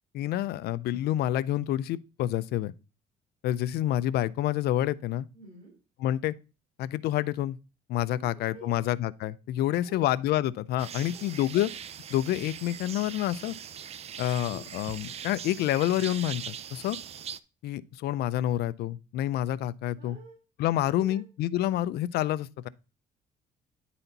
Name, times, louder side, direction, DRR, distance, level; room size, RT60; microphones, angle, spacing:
voice 1, 0.1-2.7 3.4-5.3 6.0-6.3 6.8-7.6 7.9-11.7 12.1-13.5 14.2-17.0 17.6-20.2 20.6-22.7, left 13 dB, 70° left, 0.5 m, -28 dB
voice 2, 5.3-5.7 8.1-8.8 9.6-10.1 10.8-11.3 14.5-14.7 20.0-20.4 20.8-21.2, right 3 dB, 55° right, 3.4 m, -50 dB
sound 1, 10.8-17.4, right 8 dB, 40° right, 0.4 m, -41 dB
10.0 x 4.2 x 4.0 m
cardioid pair, 110°, 17 cm